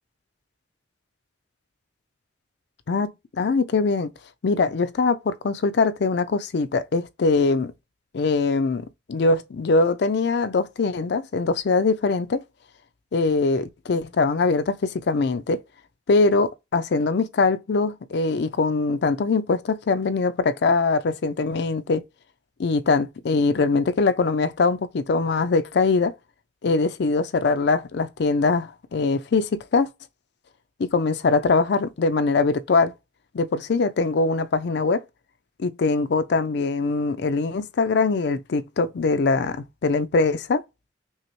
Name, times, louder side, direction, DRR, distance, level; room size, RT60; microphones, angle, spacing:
voice 1, 2.9-4.1 4.4-7.7 8.1-12.4 13.1-15.6 16.1-22.0 22.6-26.1 26.6-29.9 30.8-32.9 33.3-35.0 35.6-40.6, left 3 dB, 60° left, 0.4 m, -22 dB
5.5 x 2.0 x 3.0 m
head